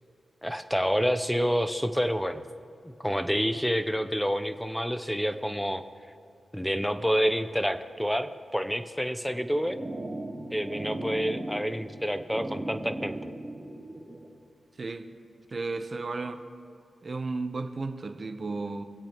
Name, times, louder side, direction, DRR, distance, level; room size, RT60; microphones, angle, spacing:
voice 1, 0.4-2.4 2.8-5.8 6.5-9.8 10.5-13.3, equal, 5° left, 10 dB, 0.7 m, -28 dB
sound 1, 9.3-14.3, right 1 dB, 15° right, 3.5 m, -38 dB
voice 2, 15.5-16.4 17.0-18.8, right 3 dB, 50° right, 8 dB, 0.9 m, -34 dB
25.0 x 8.3 x 3.0 m, 2.5 s
cardioid pair, 75°, 0 cm